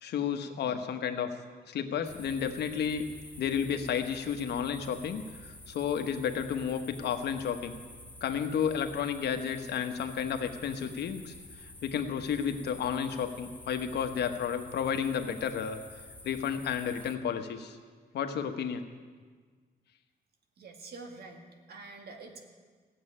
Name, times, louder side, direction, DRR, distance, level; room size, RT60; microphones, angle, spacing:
voice 1, 0.0-1.3 1.7-3.1 3.4-7.8 8.2-15.8 16.2-17.8 18.1-18.8, left 7 dB, 85° left, 7 dB, 1.2 m, -32 dB
sound 1, 2.0-17.2, left 1 dB, 10° left, 1.0 m, -49 dB
voice 2, 20.6-22.4, right 3 dB, 70° right, 3 dB, 1.9 m, -46 dB
16.0 x 7.9 x 9.9 m, 1.5 s
cardioid pair, 135°, 17 cm